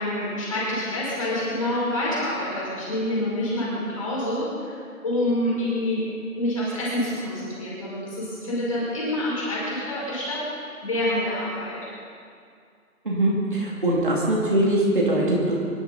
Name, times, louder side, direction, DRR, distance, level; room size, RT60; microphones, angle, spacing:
voice 1, 0.0-4.8 5.0-6.0 6.3-10.4 10.8-11.8, left 1 dB, 20° left, -7 dB, 5.5 m, -27 dB
voice 2, 13.0-15.6, right 1 dB, 35° right, -5 dB, 2.7 m, -22 dB
25.5 x 13.5 x 4.1 m, 2.2 s
figure-of-eight pair, 170°, 44 cm